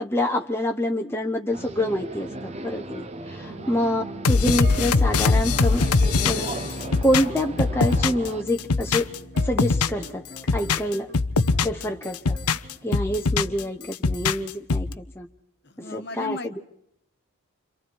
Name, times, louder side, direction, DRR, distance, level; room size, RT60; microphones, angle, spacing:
voice 1, 0.0-5.9 6.2-9.1 9.4-10.3 10.5-11.1 11.6-12.4 12.8-15.3 15.8-16.5, left 1 dB, 10° left, 2 dB, 0.9 m, -27 dB
sound 1, 1.5-8.4, right 2 dB, 30° right, 0.9 m, -37 dB
sound 2, 1.5-12.1 12.3-13.7, right 3 dB, 50° right, 2.3 m, -46 dB
voice 2, 3.4-3.8 15.6-16.6, left 2 dB, 50° left, 8 dB, 1.4 m, -37 dB
sound 3, 4.2-8.3 8.6-10.1 10.4-11.8 12.1-13.6 13.9-14.9, left 4 dB, 90° left, 0.9 m, -22 dB
29.5 x 26.5 x 4.7 m, 0.74 s
head